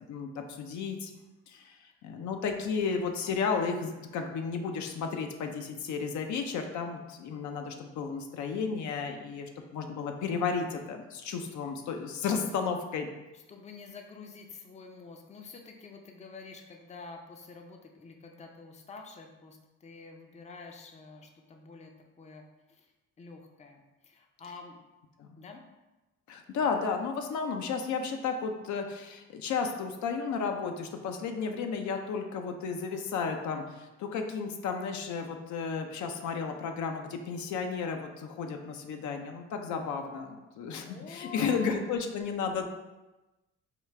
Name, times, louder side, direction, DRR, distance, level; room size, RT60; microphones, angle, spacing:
voice 1, 0.1-1.1 1.5-13.1 25.2-25.4 26.3-42.7, left 5 dB, 70° left, 4 dB, 0.5 m, -33 dB
voice 2, 13.5-21.9 22.2-22.4 22.8-22.9 23.2-24.8 25.4-25.6 40.8-41.7, left 4 dB, 25° left, 3 dB, 0.5 m, -48 dB
4.9 x 2.4 x 3.2 m, 1.1 s
cardioid pair, 90°, 30 cm